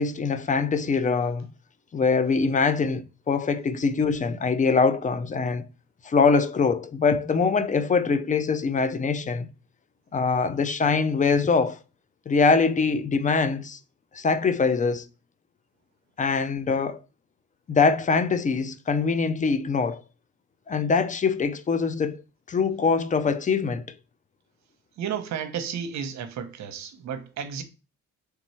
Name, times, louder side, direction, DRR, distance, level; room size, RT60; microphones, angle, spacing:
voice 1, 0.0-1.5 1.9-5.7 6.0-9.5 10.1-11.8 12.3-13.8 14.1-15.1 16.2-17.0 17.7-20.0 20.7-22.2 22.5-23.8, left 4 dB, 25° left, 0.4 m, -23 dB
voice 2, 25.0-27.6, right 8 dB, 65° right, 0.8 m, -32 dB
3.4 x 3.0 x 4.2 m
cardioid pair, 90°, 30 cm